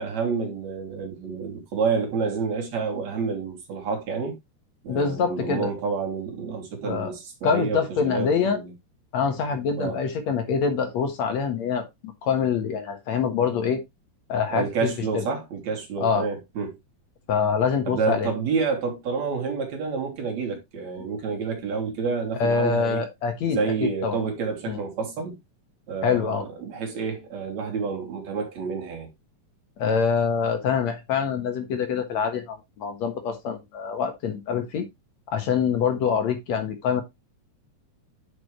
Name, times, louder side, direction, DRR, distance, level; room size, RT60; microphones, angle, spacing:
voice 1, 0.0-4.3 4.8-8.7 9.8-10.0 14.5-16.7 17.9-23.0 23.5-25.4 25.9-29.1, right 5 dB, 65° right, 3.5 m, -29 dB
voice 2, 4.9-5.7 6.8-7.1 7.4-8.6 9.1-11.8 12.2-13.8 14.3-14.9 15.1-15.2 16.0-16.3 17.3-18.3 22.4-23.6 24.0-24.2 24.7-24.8 26.0-26.4 29.8-34.8 35.3-37.0, left 6 dB, 65° left, 2.7 m, -25 dB
9.7 x 6.2 x 3.2 m
omnidirectional pair, 3.5 m